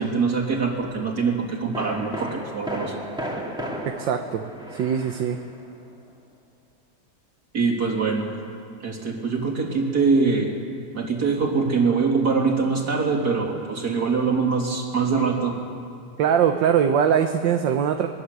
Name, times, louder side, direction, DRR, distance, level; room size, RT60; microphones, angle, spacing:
voice 1, 0.0-3.0 7.5-8.3 8.8-10.5 10.9-15.6, right 4 dB, 55° right, 1 dB, 3.6 m, -23 dB
sound 1, 0.8-1.0 1.7-5.8 6.1-6.2, equal, ahead, 2.8 m, -34 dB
voice 2, 3.8-5.4 16.2-18.1, right 8 dB, 75° right, 6 dB, 1.6 m, -22 dB
23.0 x 20.5 x 8.3 m, 2.3 s
omnidirectional pair, 2.1 m